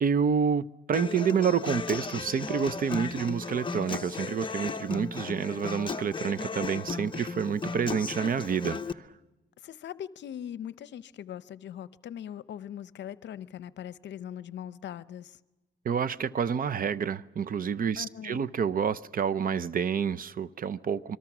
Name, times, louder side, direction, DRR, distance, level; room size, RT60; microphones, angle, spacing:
voice 1, 0.0-9.1 15.8-21.2, right 7 dB, 45° right, 0.7 m, -28 dB
Human voice / Acoustic guitar, 0.9-8.9, left 4 dB, 25° left, 0.8 m, -35 dB
voice 2, 9.6-15.4 18.0-18.4, left 10 dB, 65° left, 0.7 m, -41 dB
25.5 x 23.5 x 6.1 m
cardioid pair, 90°, 20 cm